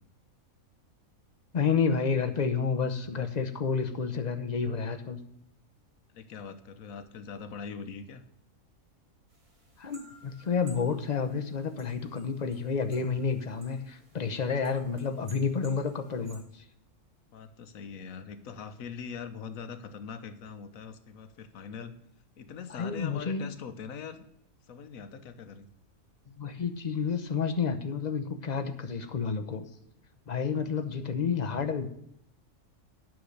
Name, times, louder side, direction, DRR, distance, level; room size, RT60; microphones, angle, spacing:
voice 1, 1.5-5.2 9.8-16.6 22.7-23.5 26.3-29.7 30.3-31.9, left 5 dB, 35° left, 7 dB, 0.8 m, -30 dB
voice 2, 6.1-8.2 17.3-21.9 22.4-24.3 24.7-25.7, left 6 dB, 75° left, 11 dB, 1.2 m, -42 dB
sound 1, 9.3-16.4, right 1 dB, 70° right, 3.0 m, -57 dB
9.3 x 7.2 x 6.5 m, 0.72 s
omnidirectional pair, 1.5 m